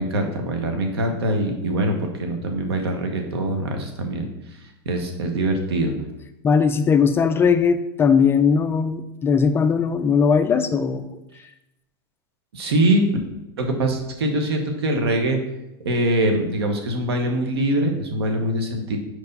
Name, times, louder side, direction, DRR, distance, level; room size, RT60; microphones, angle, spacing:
voice 1, 0.0-4.3 4.8-5.9 12.5-13.1 13.6-15.4 15.8-19.0, right 1 dB, 90° right, 4 dB, 1.3 m, -23 dB
voice 2, 6.4-11.1, left 6 dB, 20° left, 9 dB, 0.4 m, -19 dB
4.7 x 4.7 x 5.3 m, 0.92 s
supercardioid pair, 130°, 13 cm